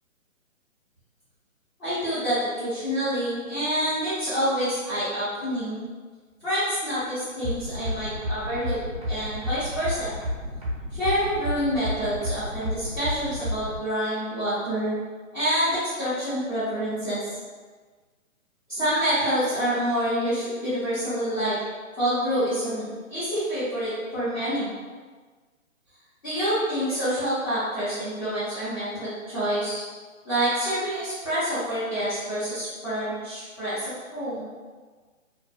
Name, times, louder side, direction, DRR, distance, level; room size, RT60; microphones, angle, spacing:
voice 1, 1.8-5.8 6.4-8.8 9.0-10.1 10.9-14.9 15.3-17.2 18.7-21.6 22.0-24.7 26.2-29.8 30.2-34.5, equal, 20° left, -16 dB, 0.6 m, -27 dB
sound 1, 7.4-13.8, equal, 30° right, 0.6 m, -30 dB
2.5 x 2.2 x 2.3 m, 1.4 s
figure-of-eight pair, 145°, 41 cm